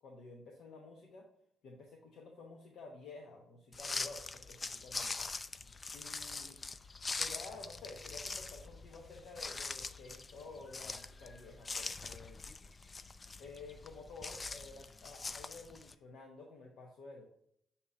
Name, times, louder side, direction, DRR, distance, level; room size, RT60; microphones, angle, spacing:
voice 1, 0.0-1.3 1.6-5.3 5.9-6.6 7.2-12.4 13.4-17.3, left 3 dB, 70° left, 0 dB, 1.0 m, -51 dB
sound 1, 3.7-15.9, left 3 dB, 30° left, 0.3 m, -43 dB
7.1 x 2.9 x 4.8 m, 0.69 s
cardioid pair, 90°, 0 cm